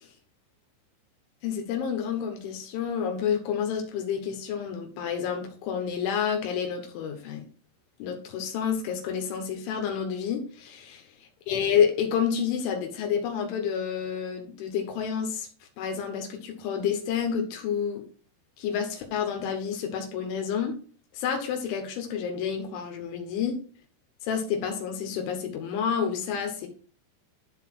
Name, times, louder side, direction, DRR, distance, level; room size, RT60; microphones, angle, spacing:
voice 1, 1.4-7.5 8.0-11.1 11.5-15.5 15.8-18.0 18.6-20.8 21.1-23.6 24.2-26.7, left 7 dB, 85° left, 3 dB, 3.8 m, -29 dB
11.5 x 4.1 x 6.3 m, 0.42 s
omnidirectional pair, 5.3 m